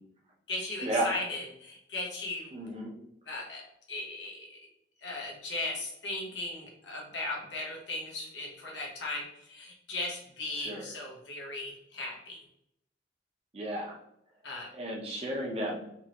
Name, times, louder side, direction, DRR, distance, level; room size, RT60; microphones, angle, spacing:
voice 1, 0.5-2.5 3.3-3.6 3.9-4.5 5.0-12.4 14.4-14.7, left 2 dB, 85° left, -2 dB, 1.2 m, -37 dB
voice 2, 2.5-2.9 10.5-10.8 13.5-14.0 14.7-15.8, right 1 dB, 35° right, -2 dB, 0.8 m, -33 dB
3.6 x 3.0 x 2.9 m, 0.76 s
head